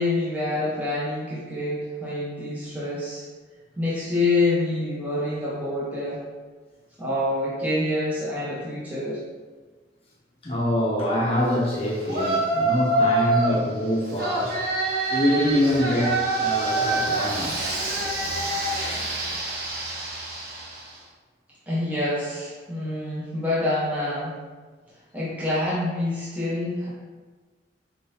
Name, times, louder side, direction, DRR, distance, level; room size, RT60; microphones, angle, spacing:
voice 1, 0.0-3.3 3.8-6.2 7.0-9.2 21.7-24.4 25.1-26.9, left 2 dB, 10° right, -8 dB, 0.8 m, -26 dB
voice 2, 10.4-14.5 15.1-17.6, left 1 dB, 35° left, -4 dB, 0.6 m, -24 dB
Yell, 12.1-13.6 14.2-20.9, right 2 dB, 55° right, 0.8 m, -26 dB
4.6 x 3.7 x 2.7 m, 1.4 s
head